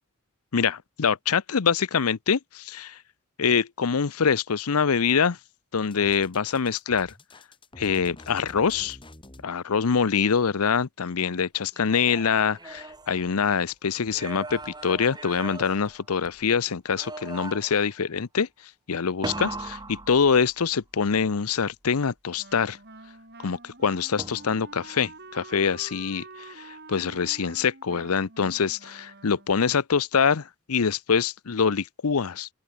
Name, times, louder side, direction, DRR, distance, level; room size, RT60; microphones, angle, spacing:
voice 1, 0.5-3.0 3.4-5.4 5.7-7.1 7.8-9.0 9.4-18.5 18.9-22.8 23.4-32.5, left 6 dB, 90° left, 0.7 m, -25 dB
sound 1, 5.9-9.5, left 1 dB, 25° left, 3.2 m, -48 dB
sound 2, 11.7-13.6 14.1-16.5 16.9-17.9 19.2-20.8 24.2-24.8, right 2 dB, 20° right, 3.6 m, -39 dB
Wind instrument woodwind instrument, 22.4-29.7, right 3 dB, 50° right, 4.9 m, -47 dB
open air
head